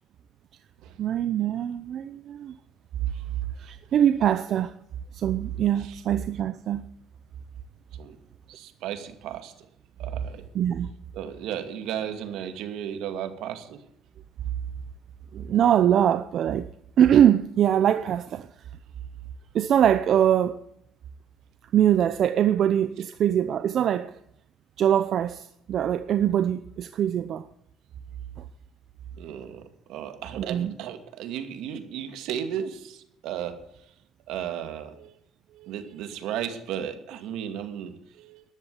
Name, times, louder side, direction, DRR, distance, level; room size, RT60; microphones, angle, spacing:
voice 1, 1.0-2.5 3.6-4.7 5.1-6.8 10.5-10.9 15.3-16.7 17.0-18.5 19.5-20.6 21.7-24.1 24.8-27.5 30.4-30.7, right 10 dB, 50° right, 0.8 m, -23 dB
voice 2, 8.5-9.7 10.0-10.4 11.1-13.8 29.2-33.9 34.3-35.1 35.5-38.5, right 9 dB, 75° right, 2.4 m, -35 dB
13.5 x 11.5 x 8.5 m
cardioid pair, 125°, 0 cm